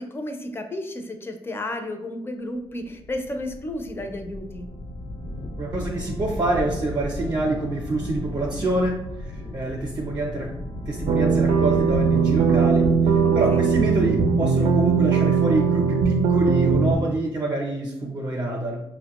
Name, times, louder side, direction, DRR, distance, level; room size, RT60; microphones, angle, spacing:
voice 1, 0.0-4.7 13.2-13.8, left 1 dB, 20° left, 4 dB, 0.4 m, -33 dB
sound 1, 2.8-14.8, left 1 dB, 70° left, 0.7 m, -35 dB
voice 2, 5.6-9.0 9.5-10.5 10.9-12.9 13.3-18.8, right 2 dB, 45° right, 0 dB, 0.6 m, -26 dB
sound 2, 11.1-16.9, right 5 dB, 90° right, 0.4 m, -20 dB
5.5 x 2.1 x 2.9 m, 0.87 s
cardioid pair, 125°, 10 cm